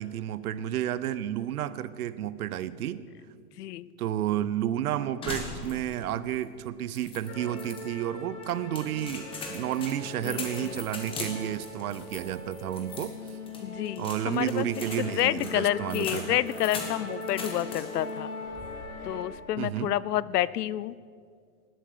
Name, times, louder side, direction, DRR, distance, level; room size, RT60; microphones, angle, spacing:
voice 1, 0.0-3.0 4.0-13.1 14.0-16.4 19.6-19.9, right 11 dB, 70° right, 16 dB, 0.8 m, -31 dB
voice 2, 3.6-3.9 10.2-10.7 13.6-14.7 15.0-18.3 19.0-20.9, left 13 dB, 85° left, 20 dB, 0.6 m, -29 dB
sound 1, 5.2-6.1 6.4-6.5 7.0-7.8 8.4-18.1 18.5-19.0, left 3 dB, 10° left, 1.3 m, -40 dB
sound 2, 7.3-19.2, left 2 dB, 45° left, 2.7 m, -40 dB
19.0 x 7.8 x 6.7 m, 2.1 s
hypercardioid pair, 155°, 46 cm